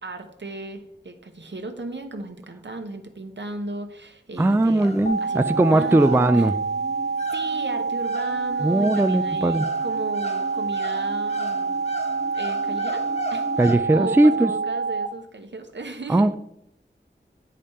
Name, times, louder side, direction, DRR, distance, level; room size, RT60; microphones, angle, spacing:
voice 1, 0.0-6.5 7.3-11.8 12.3-16.3, right 2 dB, 65° right, 6 dB, 1.0 m, -36 dB
sound 1, 4.3-13.8, left 2 dB, 35° left, 1.0 m, -38 dB
voice 2, 4.4-6.5 8.6-9.7 13.6-14.5 16.1-16.3, right 2 dB, 10° right, 11 dB, 0.3 m, -19 dB
sound 2, 5.1-15.1, right 4 dB, 50° left, 0.7 m, -27 dB
8.6 x 5.1 x 4.3 m, 0.77 s
wide cardioid pair, 45°, 20 cm